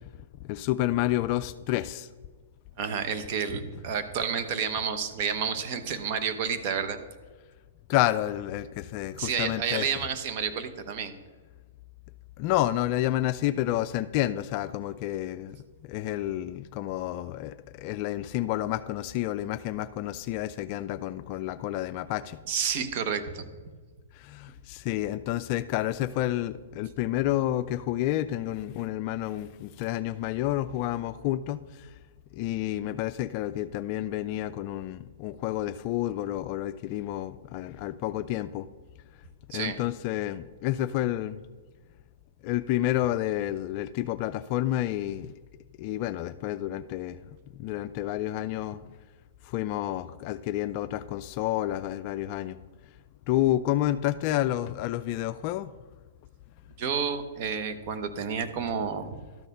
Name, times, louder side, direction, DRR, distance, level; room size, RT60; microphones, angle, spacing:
voice 1, 0.4-2.1 7.9-10.0 12.4-15.6 15.9-22.4 24.1-31.9 32.3-38.7 39.5-41.4 42.4-45.3 45.8-47.2 47.5-48.8 49.4-52.6 53.3-55.7, left 14 dB, 45° left, 13 dB, 0.3 m, -29 dB
voice 2, 2.8-7.0 9.2-11.1 22.5-23.4 39.5-39.8 56.8-59.2, right 6 dB, 45° right, 8 dB, 0.9 m, -30 dB
12.0 x 4.1 x 6.7 m, 1.4 s
hypercardioid pair, 125°, 0 cm